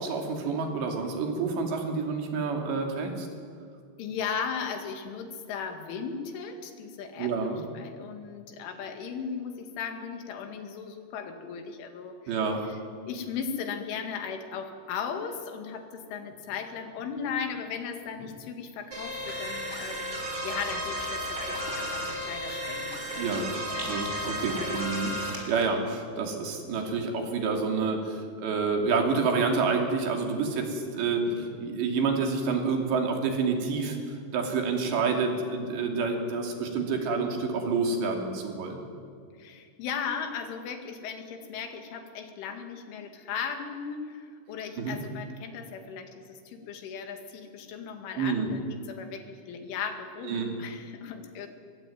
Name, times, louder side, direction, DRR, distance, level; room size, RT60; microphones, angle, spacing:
voice 1, 0.0-3.3 7.2-7.6 12.3-12.6 23.2-23.4 23.8-38.8 44.8-45.0 48.2-48.5 50.2-50.5, right 4 dB, 70° right, 2 dB, 4.9 m, -28 dB
voice 2, 4.0-7.4 7.7-12.4 12.6-12.8 13.1-24.8 31.3-31.4 39.3-51.5, left 6 dB, 90° left, 5 dB, 4.7 m, -37 dB
sound 1, 18.9-25.3, equal, 30° right, 4.4 m, -33 dB
Rattle, 20.6-25.9, right 1 dB, 10° right, 4.9 m, -48 dB
24.0 x 22.0 x 9.3 m, 2.3 s
omnidirectional pair, 5.4 m